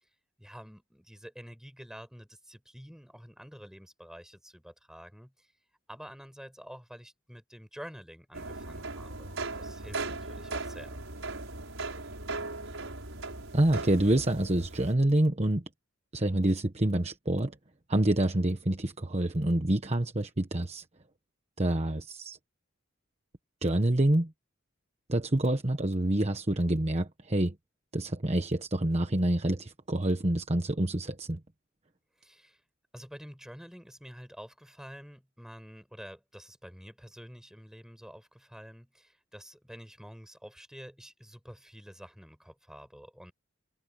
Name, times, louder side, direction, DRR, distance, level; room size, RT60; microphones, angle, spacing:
voice 1, 0.4-5.5 5.9-11.0 32.2-32.6 32.9-43.3, equal, 5° right, 5.7 m, -48 dB
sound 1, 8.3-14.9, right 3 dB, 70° right, 6.5 m, -38 dB
voice 2, 13.5-15.6 16.1-17.5 17.9-20.8 21.6-22.4 23.6-24.3 25.1-27.5 27.9-31.4, right 1 dB, 30° right, 1.2 m, -27 dB
head